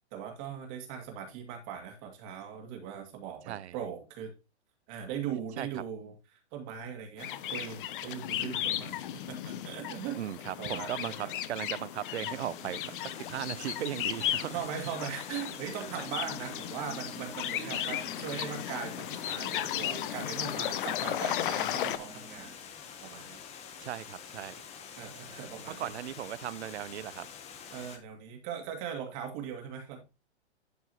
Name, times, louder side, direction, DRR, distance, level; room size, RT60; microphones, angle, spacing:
voice 1, 0.1-4.3 4.9-10.2 10.6-11.3 14.5-22.5 23.0-23.4 25.0-25.9 27.7-30.0, right 8 dB, 35° right, 2.4 m, -40 dB
sound 1, 7.2-22.0, left 11 dB, 50° left, 0.7 m, -35 dB
voice 2, 10.2-12.9 13.3-14.5 17.6-17.8 23.8-24.6 25.7-27.3, right 11 dB, 70° right, 0.7 m, -37 dB
Water, 11.5-28.0, left 7 dB, 20° left, 0.9 m, -47 dB
sound 2, 12.4-22.5, left 1 dB, ahead, 0.3 m, -51 dB
11.5 x 4.6 x 3.0 m
hypercardioid pair, 135°, 34 cm